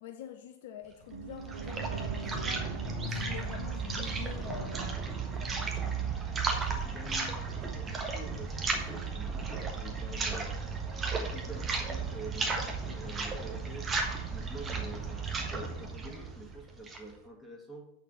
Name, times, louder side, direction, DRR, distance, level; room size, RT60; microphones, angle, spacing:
voice 1, 0.0-2.8 3.0-5.1 5.4-6.1, left 9 dB, 55° left, 5 dB, 0.7 m, -46 dB
sound 1, 1.1-17.1, right 4 dB, 20° right, 1.4 m, -34 dB
Piano, 1.1-11.1 11.4-11.5, right 6 dB, 60° right, 0.8 m, -48 dB
voice 2, 6.5-10.6 11.1-13.9 14.3-17.9, right 1 dB, 5° left, -1 dB, 2.2 m, -47 dB
8.1 x 4.5 x 7.2 m, 0.83 s
figure-of-eight pair, 90°, 0 cm